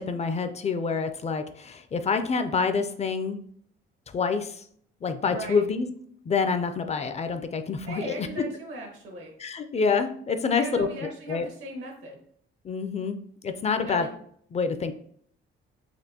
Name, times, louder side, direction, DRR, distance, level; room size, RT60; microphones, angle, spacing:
voice 1, 0.0-3.4 4.1-4.6 5.0-5.9 6.3-8.5 9.4-10.9 11.3-11.5 12.6-13.2 13.4-14.1 14.5-14.9, left 5 dB, 35° left, 8 dB, 0.4 m, -27 dB
voice 2, 5.3-5.6 7.9-9.3 10.5-12.2 13.8-14.1, right 1 dB, 80° right, 0 dB, 1.3 m, -37 dB
4.2 x 2.5 x 2.8 m, 0.63 s
cardioid pair, 90°, 20 cm